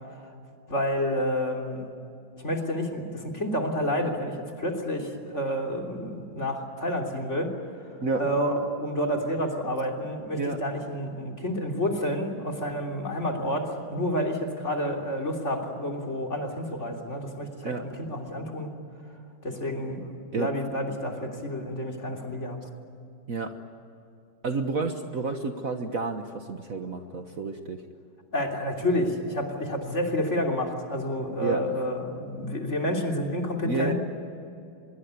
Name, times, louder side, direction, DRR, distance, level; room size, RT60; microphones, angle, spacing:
voice 1, 0.7-1.9 2.4-7.5 7.8-7.9 8.2-18.7 19.4-22.6 28.3-33.9, equal, 35° left, 2 dB, 3.5 m, -29 dB
voice 2, 24.4-27.8 31.4-31.6 33.6-33.9, right 3 dB, 45° right, 6 dB, 1.6 m, -30 dB
25.0 x 22.5 x 9.6 m, 2.6 s
omnidirectional pair, 2.2 m